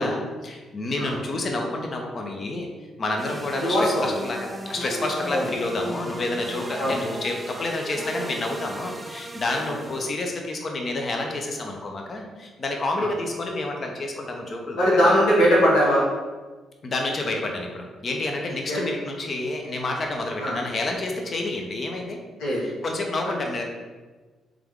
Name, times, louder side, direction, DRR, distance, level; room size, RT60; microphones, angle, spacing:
voice 1, 0.0-2.7 3.0-15.1 16.8-22.2 22.6-23.6, left 2 dB, 45° left, 2 dB, 0.6 m, -29 dB
sound 1, 3.2-10.3, right 1 dB, 20° right, 0.3 m, -36 dB
voice 2, 3.6-4.1 5.3-5.5 6.8-7.0 9.7-9.8 13.0-13.1 14.7-16.1 18.7-18.8 20.4-20.6 22.4-22.7 23.2-23.4, equal, 85° left, -6 dB, 1.2 m, -21 dB
3.5 x 3.4 x 3.6 m, 1.3 s
cardioid pair, 90°, 0 cm